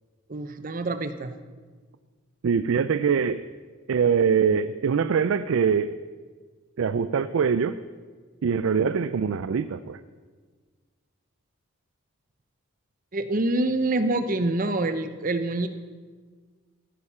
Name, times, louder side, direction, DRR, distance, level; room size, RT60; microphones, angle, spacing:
voice 1, 0.3-1.3 13.1-15.7, right 2 dB, 40° right, 10 dB, 0.7 m, -26 dB
voice 2, 2.4-3.5 3.9-5.9 6.8-7.8 8.4-10.0, right 6 dB, 70° right, 13 dB, 0.4 m, -23 dB
14.5 x 8.4 x 5.6 m, 1.5 s
head